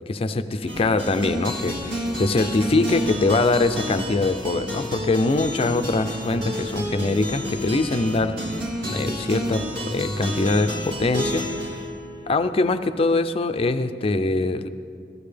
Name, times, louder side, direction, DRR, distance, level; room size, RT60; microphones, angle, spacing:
voice 1, 0.1-8.4 8.9-11.5 12.3-14.7, left 2 dB, 35° left, 10 dB, 0.4 m, -23 dB
sound 1, 0.7-12.9, equal, 75° right, 2.1 m, -30 dB
15.0 x 14.5 x 3.4 m, 2.4 s
head